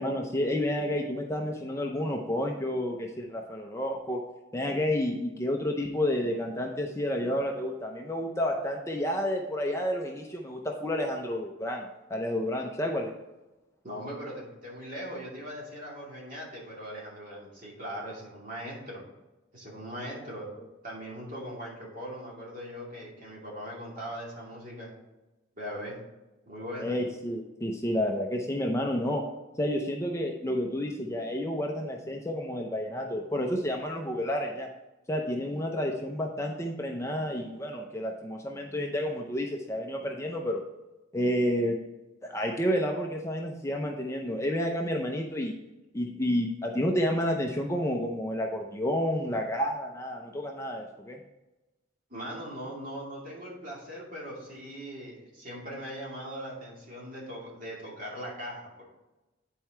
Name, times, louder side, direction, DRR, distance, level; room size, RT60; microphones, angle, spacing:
voice 1, 0.0-4.2 4.5-13.1 26.8-29.2 29.6-34.7 35.1-40.6 41.1-41.8 42.2-45.6 45.9-51.2, equal, 15° left, 1 dB, 0.6 m, -30 dB
voice 2, 13.8-19.0 19.5-20.5 20.8-24.9 25.5-26.0 26.5-27.0 52.1-58.8, equal, 45° right, -4 dB, 2.5 m, -40 dB
9.2 x 4.6 x 4.4 m, 1.0 s
head